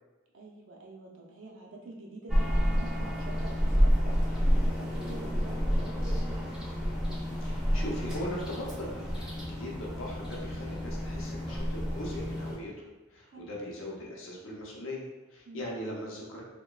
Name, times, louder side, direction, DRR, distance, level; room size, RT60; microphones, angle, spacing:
voice 1, 0.3-6.5 13.2-13.5 15.5-15.7, right 2 dB, 70° right, -2 dB, 0.5 m, -47 dB
sound 1, 2.3-12.5, equal, ahead, 0.5 m, -29 dB
voice 2, 7.4-16.4, equal, 75° left, -2 dB, 0.6 m, -40 dB
2.9 x 2.1 x 2.3 m, 1.1 s
head